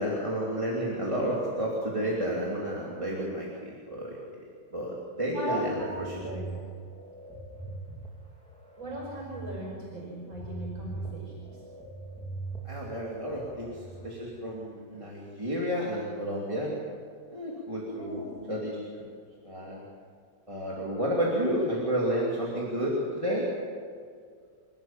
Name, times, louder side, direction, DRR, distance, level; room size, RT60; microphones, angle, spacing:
voice 1, 0.0-4.2 4.7-6.3 12.6-16.9 17.3-19.1 19.4-19.8 20.5-23.5, equal, 15° right, -5 dB, 2.8 m, -31 dB
voice 2, 5.3-6.6 8.8-11.3 17.9-18.4, equal, 80° right, -4 dB, 5.6 m, -37 dB
sound 1, 5.5-14.1, right 3 dB, 5° left, 3.2 m, -42 dB
28.5 x 12.5 x 7.5 m, 2.1 s
omnidirectional pair, 2.1 m